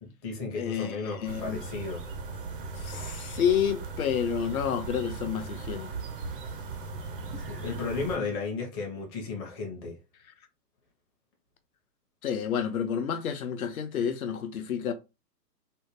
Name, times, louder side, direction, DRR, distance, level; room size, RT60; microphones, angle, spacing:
voice 1, 0.0-2.1 7.4-10.0, left 4 dB, 15° left, 0.6 m, -34 dB
voice 2, 0.5-1.0 1.2-1.6 2.8-6.0 12.2-14.9, left 8 dB, 60° left, 0.7 m, -29 dB
sound 1, 1.2-8.2, right 4 dB, 35° right, 0.4 m, -38 dB
3.5 x 2.2 x 2.9 m
figure-of-eight pair, 125°, 49 cm